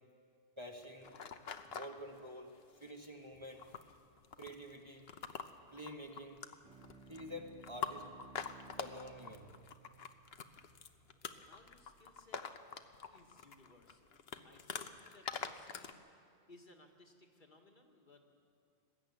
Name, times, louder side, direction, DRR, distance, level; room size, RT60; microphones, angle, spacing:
sound 1, 0.6-2.0 2.6-3.1 3.3-15.9, left 6 dB, 65° left, 1.1 m, -46 dB
voice 1, 0.6-1.2 1.7-2.5 2.8-3.6 4.4-5.1 5.7-6.4 7.1-8.1 8.8-9.5, equal, 25° right, 1 dB, 1.5 m, -48 dB
sound 2, 6.6-11.5, right 3 dB, 5° right, 2.1 m, -59 dB
voice 2, 11.1-12.4 13.1-16.0 16.5-18.2, left 2 dB, 45° left, 2 dB, 1.9 m, -63 dB
20.0 x 13.5 x 9.4 m, 2.4 s
omnidirectional pair, 1.1 m